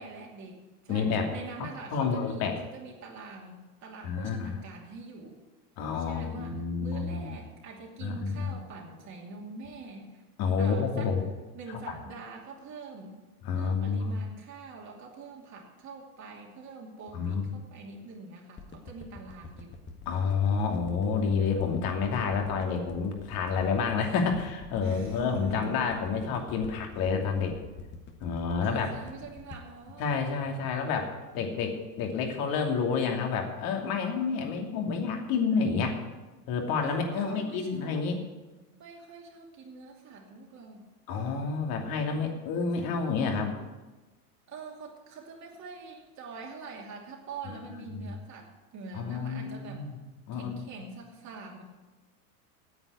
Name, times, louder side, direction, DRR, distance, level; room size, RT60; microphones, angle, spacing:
voice 1, 0.0-5.4 6.0-10.2 10.6-11.1 11.5-13.2 13.5-19.8 24.8-25.9 26.2-26.3 28.6-30.1 36.8-38.1 38.7-40.8 42.8-43.1 44.5-49.8 50.3-51.6, right 4 dB, 40° right, -1 dB, 2.8 m, -44 dB
voice 2, 0.9-1.3 1.6-2.5 4.0-4.5 5.8-7.3 8.0-8.6 10.4-11.2 11.7-12.0 13.4-14.2 17.1-17.5 20.1-27.5 28.2-28.9 30.0-36.0 36.5-38.2 41.1-43.5 47.5-47.6 47.9-48.1 48.9-50.0 50.3-50.6, left 5 dB, 50° left, 3 dB, 2.7 m, -29 dB
sound 1, 18.6-30.9 31.3-31.4, left 4 dB, 25° left, 1.5 m, -46 dB
9.6 x 8.1 x 9.7 m, 1.2 s
hypercardioid pair, 100°, 46 cm